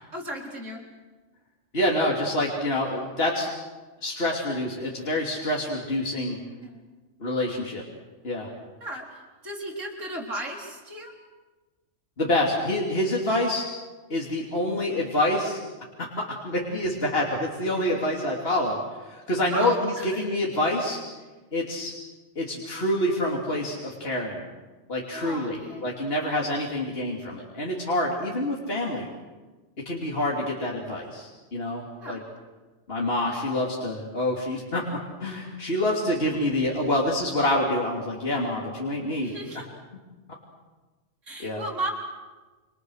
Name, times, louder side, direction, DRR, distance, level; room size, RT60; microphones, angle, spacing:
voice 1, 0.1-0.8 6.6-6.8 8.8-11.1 19.5-20.3 25.1-25.9 32.0-32.2 39.2-39.7 41.2-41.9, right 1 dB, 65° right, 0 dB, 4.4 m, -35 dB
voice 2, 1.7-3.5 4.0-6.4 7.2-7.8 8.2-8.5 12.2-13.6 14.1-15.6 16.0-18.8 19.1-21.0 21.5-21.9 22.3-24.4 24.9-29.1 29.8-32.2 32.9-34.8 35.2-39.3 41.4-41.6, left 1 dB, 45° left, -2 dB, 3.2 m, -27 dB
28.0 x 27.0 x 6.5 m, 1.3 s
omnidirectional pair, 1.4 m